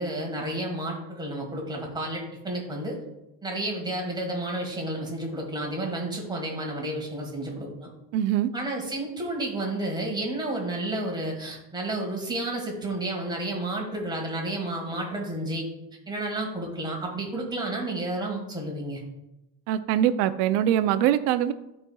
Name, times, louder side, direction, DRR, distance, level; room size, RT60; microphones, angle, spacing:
voice 1, 0.0-3.0 3.4-7.9 8.5-15.7 16.1-19.0, right 1 dB, 10° right, -1 dB, 1.6 m, -31 dB
voice 2, 8.1-8.5 19.7-21.5, right 11 dB, 80° right, 12 dB, 0.6 m, -23 dB
11.5 x 4.3 x 2.3 m, 0.93 s
cardioid pair, 140°, 42 cm